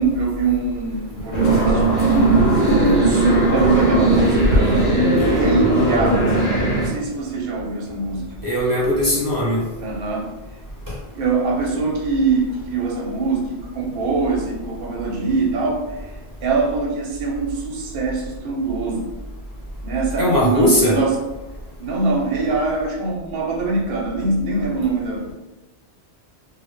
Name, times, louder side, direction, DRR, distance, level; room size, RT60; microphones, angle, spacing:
voice 1, 0.0-1.9 2.6-5.0 5.3-6.2 6.8-8.4 9.8-10.3 11.1-15.8 16.4-19.1 19.8-21.1 21.8-25.3, right 4 dB, 60° right, -1 dB, 0.7 m, -23 dB
sound 1, 1.3-6.9, right 2 dB, 75° left, 1.0 m, -17 dB
voice 2, 8.4-9.6 20.2-21.0, left 1 dB, 25° right, -7 dB, 0.4 m, -18 dB
2.1 x 2.1 x 3.0 m, 1.1 s
omnidirectional pair, 1.2 m